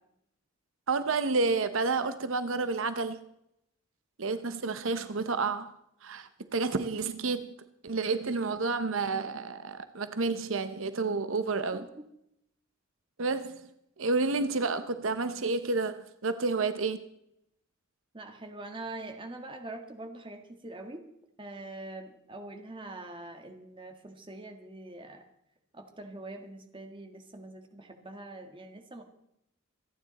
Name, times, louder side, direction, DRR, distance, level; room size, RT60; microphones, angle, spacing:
voice 1, 0.9-3.2 4.2-5.7 6.0-7.5 7.8-11.9 13.2-13.6 14.0-17.0, right 3 dB, 75° right, 11 dB, 0.8 m, -30 dB
voice 2, 18.1-21.0 21.4-25.2 25.7-29.0, right 2 dB, 25° right, 5 dB, 1.6 m, -44 dB
27.0 x 9.5 x 4.2 m, 0.81 s
head